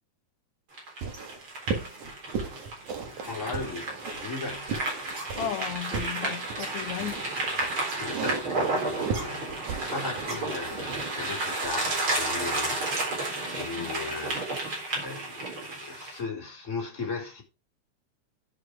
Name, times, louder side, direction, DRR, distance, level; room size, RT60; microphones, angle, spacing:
sound 1, 0.7-16.2, right 2 dB, 40° right, 4.7 m, -32 dB
sound 2, 1.0-11.7, right 5 dB, 85° right, 3.5 m, -36 dB
voice 1, 3.3-4.8 7.6-17.4, left 4 dB, 25° left, 4.0 m, -38 dB
voice 2, 5.4-7.2 9.3-9.6 13.8-14.0, left 9 dB, 75° left, 2.2 m, -35 dB
10.5 x 7.8 x 4.9 m
omnidirectional pair, 3.3 m